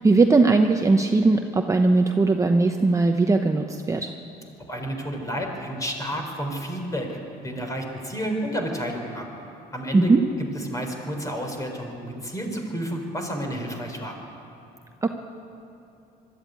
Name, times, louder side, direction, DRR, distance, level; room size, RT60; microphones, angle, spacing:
voice 1, 0.0-4.1 9.9-10.2 15.0-15.1, right 3 dB, 20° right, 4 dB, 0.9 m, -19 dB
voice 2, 4.7-9.2 9.7-10.2 10.5-14.2, equal, 20° left, 3 dB, 4.1 m, -31 dB
23.0 x 13.0 x 9.3 m, 2.8 s
cardioid pair, 110°, 17 cm